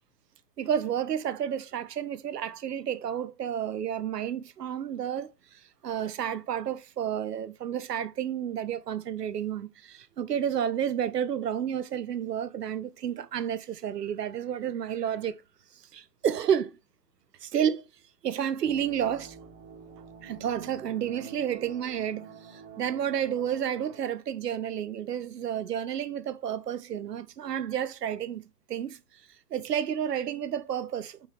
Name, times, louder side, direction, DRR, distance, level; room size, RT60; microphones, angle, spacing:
voice 1, 0.6-15.4 15.9-16.8 17.4-17.9 18.2-19.4 20.2-28.4 28.7-29.0 29.5-31.3, right 9 dB, 85° right, 0.7 m, -31 dB
sound 1, 18.6-24.0, right 5 dB, 45° right, 1.4 m, -48 dB
5.3 x 3.1 x 3.1 m
hypercardioid pair, 120°, 47 cm